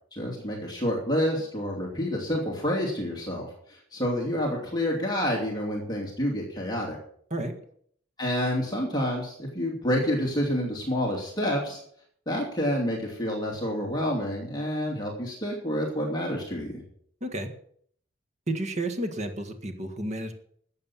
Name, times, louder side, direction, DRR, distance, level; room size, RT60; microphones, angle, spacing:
voice 1, 0.1-7.0 8.2-11.8 12.3-16.7, equal, 20° left, -2 dB, 2.8 m, -28 dB
voice 2, 17.2-17.5 18.5-20.3, right 1 dB, 35° right, 7 dB, 1.8 m, -31 dB
13.0 x 8.0 x 7.3 m, 0.62 s
head